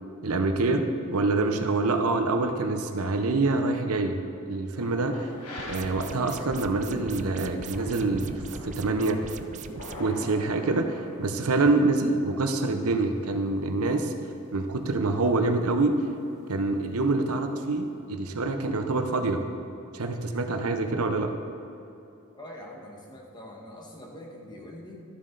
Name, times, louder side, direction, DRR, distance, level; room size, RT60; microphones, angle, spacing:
voice 1, 0.2-4.2 4.5-5.3 5.7-9.3 10.0-14.1 14.5-16.0 16.5-19.4 19.9-21.3, right 3 dB, 80° right, 6 dB, 0.7 m, -26 dB
sound 1, 4.7-17.9, left 1 dB, 90° left, 1.5 m, -46 dB
sound 2, 5.6-10.0, right 5 dB, 35° right, 0.3 m, -40 dB
voice 2, 22.3-25.0, left 1 dB, 20° left, -1 dB, 1.2 m, -44 dB
12.5 x 7.4 x 3.9 m, 2.8 s
head